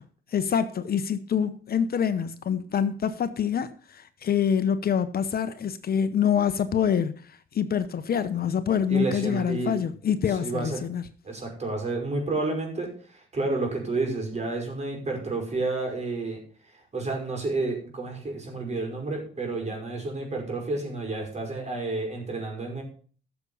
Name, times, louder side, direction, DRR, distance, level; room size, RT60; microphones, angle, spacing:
voice 1, 0.3-7.1 7.5-11.0, left 8 dB, 50° left, 0.9 m, -26 dB
voice 2, 8.9-9.7 10.3-10.8 11.2-16.4 16.9-22.8, right 3 dB, 35° right, 5.5 m, -30 dB
13.5 x 7.1 x 5.5 m
cardioid pair, 90°, 20 cm